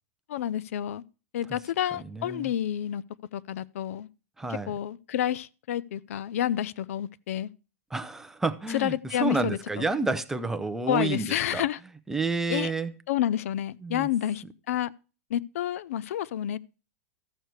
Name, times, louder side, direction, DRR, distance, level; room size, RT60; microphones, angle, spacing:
voice 1, 0.3-1.0 1.3-3.0 3.3-4.1 4.5-7.5 8.7-9.9 10.9-11.8 12.5-12.7 13.1-14.9 15.3-16.6, left 11 dB, 75° left, 0.5 m, -29 dB
voice 2, 1.9-2.5 4.4-4.7 7.9-11.6 12.1-12.9 13.8-14.1, right 3 dB, 5° right, 0.6 m, -30 dB
13.5 x 6.6 x 4.6 m
supercardioid pair, 155°, 8 cm